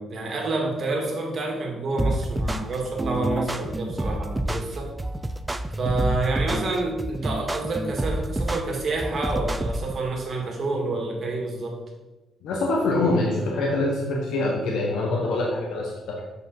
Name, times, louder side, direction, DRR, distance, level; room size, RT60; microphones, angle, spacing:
voice 1, 0.0-4.9 5.8-11.8, right 2 dB, 50° right, 0 dB, 2.0 m, -28 dB
sound 1, 2.0-10.0, right 1 dB, 10° right, 0.5 m, -28 dB
voice 2, 12.4-16.2, left 2 dB, 80° left, -1 dB, 1.1 m, -24 dB
6.6 x 5.0 x 4.7 m, 1.1 s
cardioid pair, 90°, 0 cm